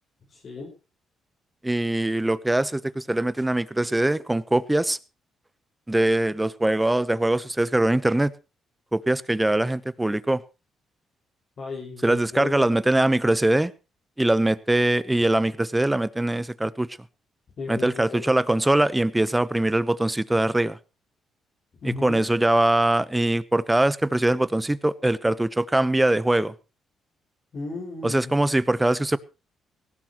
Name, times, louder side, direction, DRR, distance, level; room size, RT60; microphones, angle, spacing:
voice 1, 0.3-0.7 11.6-12.7 17.6-18.2 21.8-22.2 27.5-28.5, left 3 dB, 50° left, 5.3 m, -35 dB
voice 2, 1.6-5.0 5.9-8.3 8.9-10.4 12.0-13.7 14.2-16.9 17.7-20.8 21.8-26.5 28.0-29.2, right 1 dB, 10° right, 0.9 m, -22 dB
18.0 x 16.0 x 3.1 m
cardioid pair, 90°, 0 cm